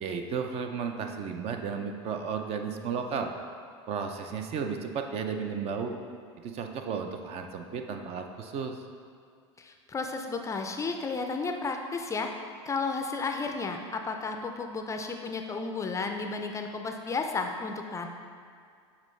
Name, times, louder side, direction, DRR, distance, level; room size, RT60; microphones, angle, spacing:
voice 1, 0.0-3.3 3.9-6.0 6.4-8.8, right 6 dB, 45° right, 5 dB, 0.5 m, -33 dB
voice 2, 9.6-12.3 12.7-18.1, left 4 dB, 20° left, 4 dB, 0.4 m, -33 dB
7.3 x 4.1 x 3.2 m, 2.2 s
hypercardioid pair, 100°, 15 cm